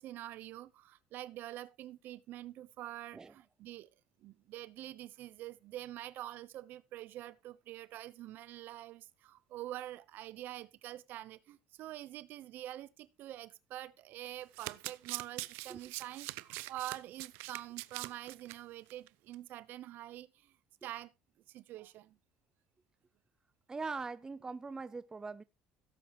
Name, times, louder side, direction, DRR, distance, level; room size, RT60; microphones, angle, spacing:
voice 1, 0.0-3.9 4.2-20.5 20.8-21.1 21.5-22.2, right 14 dB, 65° right, 1.0 m, -46 dB
Domestic sounds home sounds, 14.3-18.6 18.9-19.1 19.3-19.4, right 22 dB, 85° right, 0.6 m, -43 dB
voice 2, 23.7-25.4, right 4 dB, 20° right, 0.6 m, -41 dB
17.0 x 7.5 x 3.1 m
cardioid pair, 115°, 4 cm